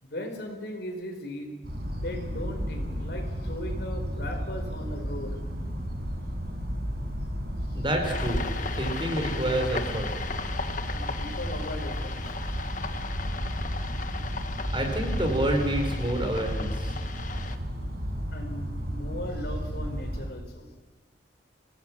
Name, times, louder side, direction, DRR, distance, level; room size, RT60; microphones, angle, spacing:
voice 1, 0.0-1.6 2.0-5.4 7.6-7.8 10.9-12.4 18.3-20.7, left 1 dB, 60° left, 4 dB, 4.5 m, -38 dB
sound 1, 1.6-20.3, equal, 60° right, 5.5 m, -33 dB
voice 2, 7.7-10.1 14.7-17.0, right 1 dB, 25° right, 4 dB, 4.2 m, -28 dB
sound 2, 8.0-17.6, left 4 dB, 45° left, 1.5 m, -37 dB
26.5 x 18.5 x 7.3 m, 1.3 s
head